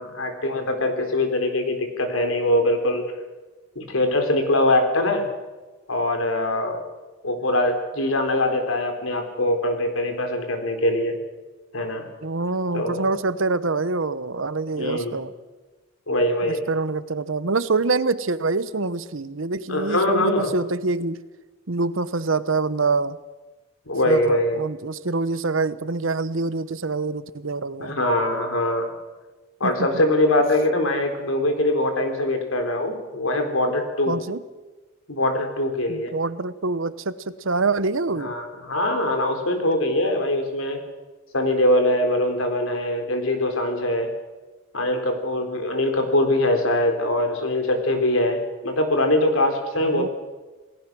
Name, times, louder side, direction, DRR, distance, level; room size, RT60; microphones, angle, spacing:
voice 1, 0.0-3.0 3.8-5.3 5.9-6.8 7.2-11.2 11.7-12.0 12.7-13.1 14.8-15.1 16.1-16.7 19.7-20.5 23.9-24.6 27.8-28.9 29.6-34.2 35.1-36.1 38.2-40.8 41.3-44.1 44.7-50.1, left 1 dB, 90° left, 5 dB, 3.9 m, -22 dB
voice 2, 12.2-15.3 16.5-21.2 21.7-23.2 24.0-27.9 29.6-30.0 34.1-34.4 35.9-38.3 49.8-50.1, right 3 dB, 70° right, 15 dB, 1.0 m, -25 dB
27.5 x 18.5 x 6.2 m, 1.2 s
head